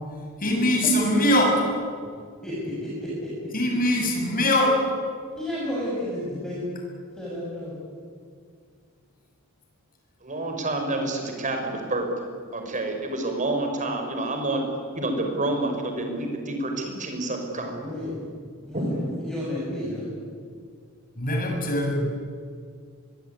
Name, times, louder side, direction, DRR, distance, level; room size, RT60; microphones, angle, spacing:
voice 1, 0.4-1.6 3.5-4.8 21.2-22.0, left 1 dB, 40° left, 2 dB, 7.2 m, -22 dB
voice 2, 1.1-1.5 2.4-3.3 5.4-6.7 7.1-7.7 17.5-18.2 18.6-20.1, left 1 dB, 5° left, -7 dB, 7.1 m, -32 dB
voice 3, 10.2-12.3 12.5-14.6 15.0-17.8 18.7-18.8, right 2 dB, 35° right, 4 dB, 5.3 m, -28 dB
25.0 x 22.0 x 9.6 m, 2.1 s
head